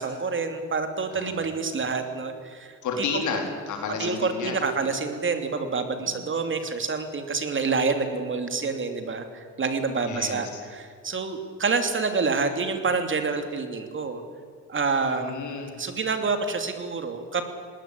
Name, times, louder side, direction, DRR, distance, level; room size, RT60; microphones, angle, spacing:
voice 1, 0.0-3.2 4.0-14.2 14.7-15.3 15.8-17.4, right 4 dB, 40° right, 7 dB, 2.9 m, -27 dB
voice 2, 1.1-1.4 2.8-4.6 6.0-6.2 10.0-10.5 15.1-15.8, left 5 dB, 75° left, 3 dB, 4.1 m, -31 dB
19.5 x 18.5 x 8.6 m, 2.1 s
cardioid pair, 90°, 30 cm